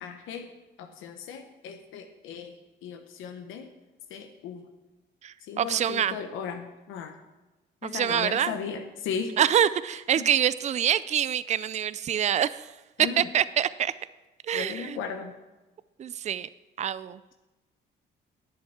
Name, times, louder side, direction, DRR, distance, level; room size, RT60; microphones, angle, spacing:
voice 1, 0.0-0.5 0.8-2.5 2.8-3.7 4.1-4.7 5.4-7.1 7.8-9.4 10.2-10.3 13.0-13.3 14.5-15.3, left 6 dB, 90° left, 5 dB, 1.1 m, -36 dB
voice 2, 5.2-6.1 7.8-8.5 9.4-12.7 13.0-13.9 14.5-15.0 16.0-16.5 16.8-17.3, right 9 dB, 35° right, 17 dB, 0.4 m, -26 dB
10.5 x 7.5 x 5.8 m, 1.1 s
cardioid pair, 90°, 20 cm